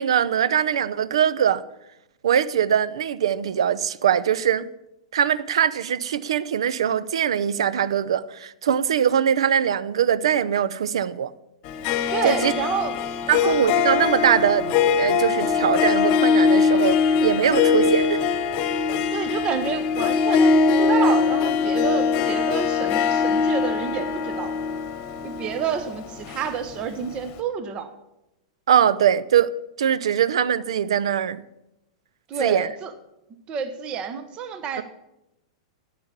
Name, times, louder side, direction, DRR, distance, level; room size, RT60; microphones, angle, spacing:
voice 1, 0.0-1.6 2.2-4.7 5.1-11.3 12.2-12.5 13.3-18.2 28.7-29.5 29.8-31.4 32.4-32.7 34.8-34.9, right 9 dB, 65° right, 0.6 m, -22 dB
Harp, 11.6-27.0, left 5 dB, 40° left, 1.1 m, -22 dB
voice 2, 12.1-12.9 13.3-13.6 19.1-24.5 25.2-27.9 32.3-32.9 33.5-34.8, right 7 dB, 30° right, 1.1 m, -29 dB
11.0 x 8.6 x 7.3 m
figure-of-eight pair, 100°, 3 cm